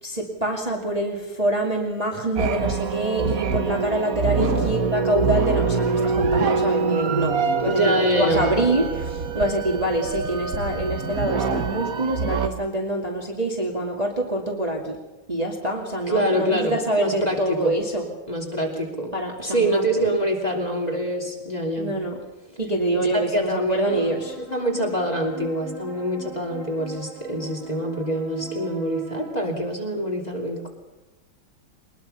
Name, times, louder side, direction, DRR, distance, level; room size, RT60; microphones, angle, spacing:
voice 1, 0.0-15.0 15.3-18.1 19.1-20.1 21.8-22.2 22.6-24.3, right 1 dB, 20° right, 0 dB, 2.4 m, -26 dB
sound 1, 2.4-12.5, right 5 dB, 45° right, 1.5 m, -25 dB
voice 2, 7.6-8.5 16.1-17.4 17.6-17.8 18.3-19.1 19.4-21.9 22.9-30.7, equal, 20° left, 1 dB, 3.0 m, -25 dB
sound 2, 23.9-29.3, right 6 dB, 80° right, 5.4 m, -38 dB
22.0 x 21.0 x 5.7 m, 1.1 s
omnidirectional pair, 2.3 m